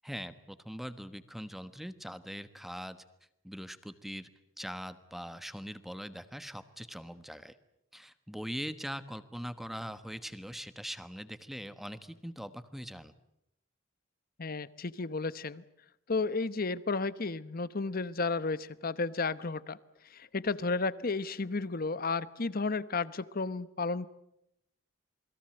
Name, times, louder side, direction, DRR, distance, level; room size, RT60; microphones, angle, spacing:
voice 1, 0.0-3.0 3.4-4.3 4.6-7.5 7.9-13.1, equal, ahead, 11 dB, 1.3 m, -42 dB
voice 2, 14.4-15.6 16.1-19.8 20.1-24.1, left 3 dB, 50° left, 16 dB, 1.0 m, -33 dB
28.0 x 21.5 x 7.8 m, 0.82 s
head